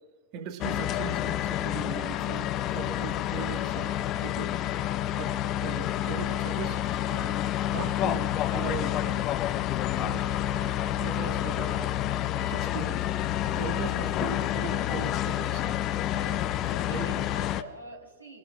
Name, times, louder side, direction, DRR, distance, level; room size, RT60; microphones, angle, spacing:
voice 1, 0.3-2.5 2.7-4.5 5.1-5.3 5.6-7.4 7.7-9.2 10.0-11.9 12.3-13.1 13.5-15.9 16.9-17.1, right 7 dB, 40° right, 4 dB, 1.7 m, -39 dB
sound 1, 0.6-17.6, left 12 dB, 35° left, 0.6 m, -29 dB
voice 2, 16.1-18.4, right 1 dB, 85° right, -1 dB, 4.4 m, -45 dB
27.0 x 19.0 x 2.5 m, 1.3 s
figure-of-eight pair, 90°, 0 cm